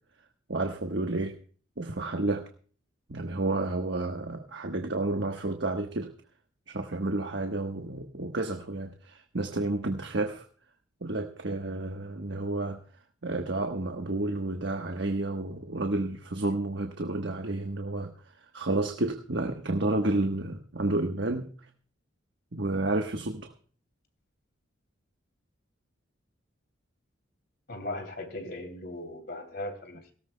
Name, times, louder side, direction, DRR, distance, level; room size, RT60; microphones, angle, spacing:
voice 1, 0.5-1.4 1.8-2.5 3.1-6.1 6.7-10.5 11.0-12.8 13.2-18.1 18.4-21.5 22.5-23.5, right 2 dB, 65° right, 1.2 m, -30 dB
voice 2, 27.7-30.1, left 1 dB, 55° left, 2.9 m, -38 dB
19.0 x 17.5 x 2.2 m
head